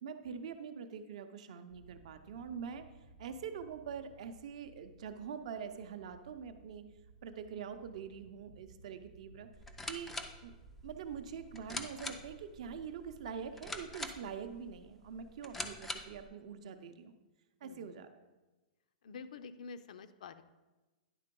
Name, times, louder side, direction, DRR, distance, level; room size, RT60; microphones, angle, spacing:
voice 1, 0.0-2.9 3.2-6.8 7.2-9.5 9.9-10.2 10.4-10.5 10.8-17.1 17.6-18.2, right 7 dB, 50° right, 8 dB, 0.6 m, -44 dB
sound 1, 1.7-14.2, right 5 dB, 80° right, 0.9 m, -60 dB
sound 2, 9.5-16.3, left 2 dB, 5° left, 0.3 m, -45 dB
voice 2, 17.6-17.9 19.0-20.4, left 5 dB, 60° left, 11 dB, 0.5 m, -48 dB
10.0 x 3.8 x 5.2 m, 1.2 s
supercardioid pair, 175°, 4 cm